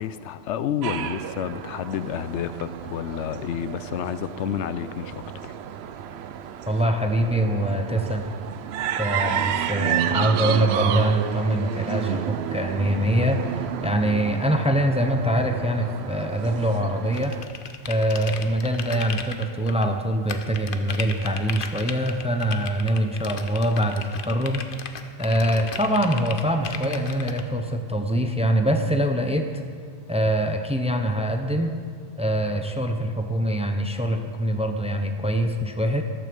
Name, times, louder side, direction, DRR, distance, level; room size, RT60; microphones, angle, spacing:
voice 1, 0.0-5.5, left 9 dB, 85° left, 13 dB, 0.9 m, -30 dB
sound 1, 0.8-17.4, right 9 dB, 70° right, 0.8 m, -30 dB
voice 2, 6.7-8.2 8.9-17.3 17.9-24.6 25.2-29.5 30.1-31.8 32.2-36.0, right 1 dB, 5° right, 6 dB, 0.6 m, -24 dB
sound 2, 17.1-19.9 20.3-27.4, left 6 dB, 55° left, 0.9 m, -36 dB
sound 3, 26.7-31.0 31.5-31.7 32.5-33.0, right 6 dB, 25° right, 1.7 m, -41 dB
14.0 x 13.0 x 5.2 m, 2.1 s
omnidirectional pair, 1.2 m